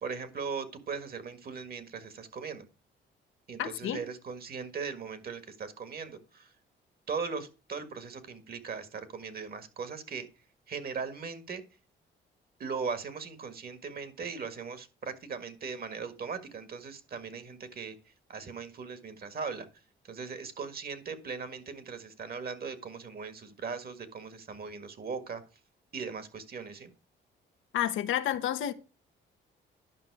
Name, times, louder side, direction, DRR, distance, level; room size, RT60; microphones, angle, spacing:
voice 1, 0.0-2.6 3.5-6.5 7.1-10.3 10.7-11.6 12.6-19.7 20.0-25.4 25.9-26.9, right 5 dB, 50° right, 1.8 m, -39 dB
voice 2, 3.6-4.0 27.7-28.7, left 11 dB, 80° left, 0.9 m, -30 dB
11.0 x 5.7 x 4.7 m
cardioid pair, 90°, 20 cm